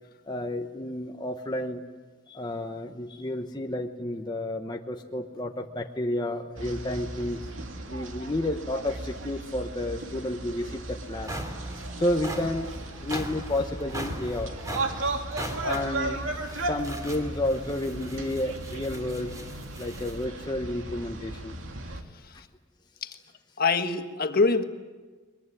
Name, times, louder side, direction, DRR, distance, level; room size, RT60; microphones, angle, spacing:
voice 1, 0.3-1.8 2.3-7.4 7.9-11.3 12.0-12.7 13.0-14.5 15.6-16.2 16.5-19.4 19.8-21.6, left 1 dB, 20° left, 3 dB, 1.0 m, -31 dB
sound 1, 6.6-22.0, right 2 dB, 85° right, 2.5 m, -36 dB
sound 2, 10.5-10.6 11.0-20.2, equal, 15° right, 3.1 m, -40 dB
voice 2, 23.6-24.6, left 4 dB, 50° left, 7 dB, 1.5 m, -24 dB
22.5 x 22.0 x 9.9 m, 1.3 s
head